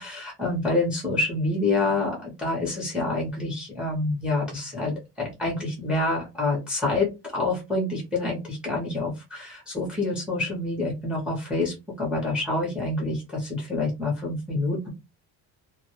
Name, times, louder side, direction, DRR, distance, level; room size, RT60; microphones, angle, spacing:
voice 1, 0.0-14.9, left 2 dB, 5° right, -2 dB, 0.6 m, -27 dB
2.1 x 2.1 x 2.9 m, 0.25 s
cardioid pair, 170°, 38 cm